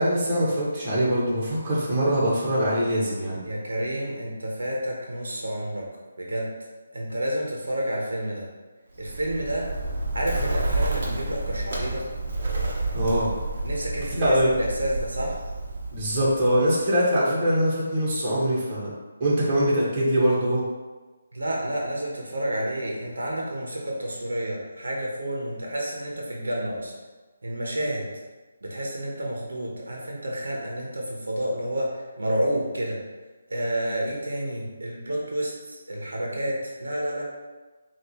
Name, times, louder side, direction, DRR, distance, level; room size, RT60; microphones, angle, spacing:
voice 1, 0.0-3.4 12.9-13.3 14.1-14.5 15.9-18.9 19.2-20.6, equal, 25° right, -7 dB, 1.4 m, -23 dB
voice 2, 3.4-5.8 6.2-6.5 6.9-8.5 9.0-9.6 10.1-12.0 13.6-15.4 21.3-26.9 27.4-28.1 28.6-33.0 33.5-37.2, right 1 dB, 85° right, -2 dB, 1.0 m, -30 dB
Bird, 9.0-16.8, right 2 dB, 55° right, 0.9 m, -30 dB
5.4 x 2.6 x 3.0 m, 1.3 s
figure-of-eight pair, 160°, 0 cm